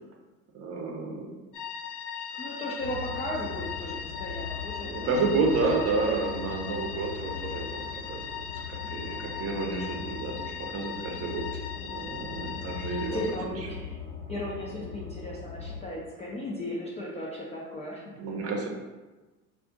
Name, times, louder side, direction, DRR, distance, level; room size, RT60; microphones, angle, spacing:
voice 1, 0.5-1.3 4.9-13.4 18.2-18.7, right 3 dB, 35° right, 0 dB, 0.7 m, -30 dB
sound 1, 1.5-13.4, left 7 dB, 60° left, 0.6 m, -39 dB
voice 2, 2.1-5.6 8.8-9.3 12.7-14.0 14.3-18.1, left 1 dB, 15° left, -5 dB, 0.4 m, -37 dB
sound 2, 2.8-15.8, left 5 dB, 85° left, 1.0 m, -40 dB
2.4 x 2.4 x 3.7 m, 1.2 s
hypercardioid pair, 85°, 43 cm